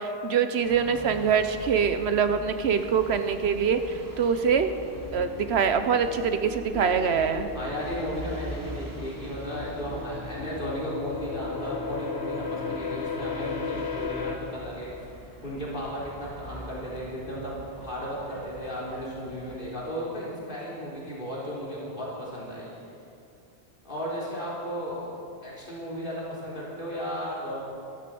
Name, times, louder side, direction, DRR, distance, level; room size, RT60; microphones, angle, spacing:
voice 1, 0.0-3.8 4.2-4.7 5.1-7.5, right 6 dB, 75° right, 9 dB, 1.1 m, -24 dB
sound 1, 0.6-19.7, equal, 20° right, 2.0 m, -44 dB
sound 2, 4.9-14.4, left 5 dB, 80° left, 1.6 m, -36 dB
voice 2, 7.5-14.9 15.4-22.7 23.8-27.6, equal, 55° left, -6 dB, 3.9 m, -35 dB
14.0 x 12.0 x 7.8 m, 2.5 s
omnidirectional pair, 1.1 m